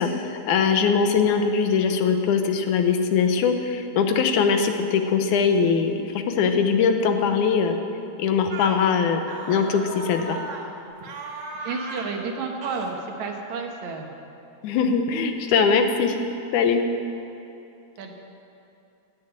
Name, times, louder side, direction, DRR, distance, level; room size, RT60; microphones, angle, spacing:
voice 1, 0.0-7.8 8.2-9.2 9.5-10.4 14.6-16.2 16.5-16.8, left 6 dB, 90° left, 6 dB, 2.4 m, -21 dB
sound 1, 8.5-8.8 9.3-10.7 11.0-12.1 12.6-12.9, right 3 dB, 50° right, 1.4 m, -36 dB
voice 2, 11.6-14.1 18.0-18.1, right 4 dB, 70° right, 2 dB, 2.5 m, -31 dB
16.5 x 6.7 x 8.8 m, 2.8 s
omnidirectional pair, 3.5 m